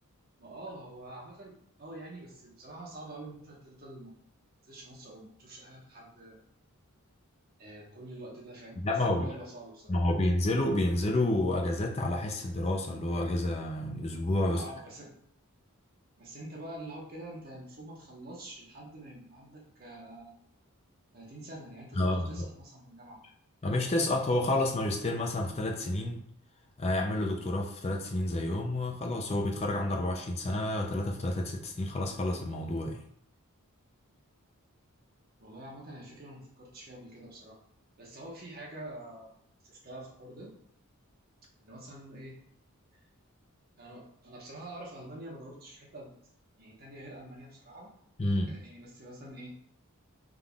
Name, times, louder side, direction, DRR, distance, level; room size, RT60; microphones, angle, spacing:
voice 1, 0.4-4.2 4.6-6.4 7.6-10.0 14.5-15.1 16.2-20.3 21.1-23.2 35.4-37.6 38.0-39.3 39.6-40.5 41.6-42.4 43.0-43.1 43.8-46.1 46.6-47.9 48.4-49.5, right 1 dB, 45° right, -3 dB, 1.1 m, -46 dB
voice 2, 8.8-9.3 9.9-14.6 22.0-22.5 23.6-26.2 26.8-33.0 48.2-48.5, left 1 dB, 30° left, 1 dB, 0.4 m, -29 dB
5.3 x 3.7 x 2.3 m, 0.68 s
head